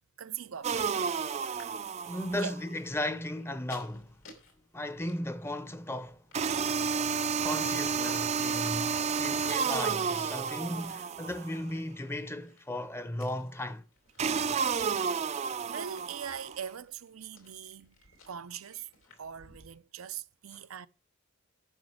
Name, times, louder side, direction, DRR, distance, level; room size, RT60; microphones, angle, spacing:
voice 1, 0.2-0.9 2.0-2.5 15.6-18.9 19.2-20.9, right 8 dB, 85° right, 0.6 m, -42 dB
sound 1, 0.6-2.6 6.3-11.6 14.2-16.6, right 6 dB, 30° right, 0.4 m, -31 dB
sound 2, 0.8-19.8, left 3 dB, 80° left, 4.1 m, -61 dB
voice 2, 2.1-4.2 4.7-6.2 7.4-13.8, left 1 dB, 10° left, 0.7 m, -36 dB
9.0 x 6.2 x 7.7 m
head